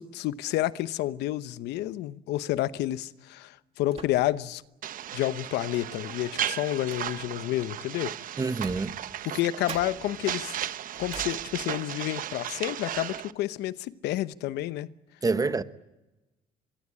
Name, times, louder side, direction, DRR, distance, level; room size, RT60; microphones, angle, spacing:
voice 1, 0.0-4.6 5.1-8.1 9.2-10.5 11.0-14.9, left 14 dB, 85° left, 0.9 m, -30 dB
sound 1, 2.5-2.8 3.9-4.6 5.0-5.1 6.0-7.5 8.5-9.4 9.7-12.0 12.4-12.6 12.9-13.2, right 6 dB, 35° right, 2.0 m, -46 dB
sound 2, 4.8-13.3, right 10 dB, 55° right, 0.9 m, -35 dB
voice 2, 8.4-8.9 15.2-15.6, right 4 dB, 20° right, 1.2 m, -26 dB
24.5 x 23.0 x 8.6 m
cardioid pair, 110°, 17 cm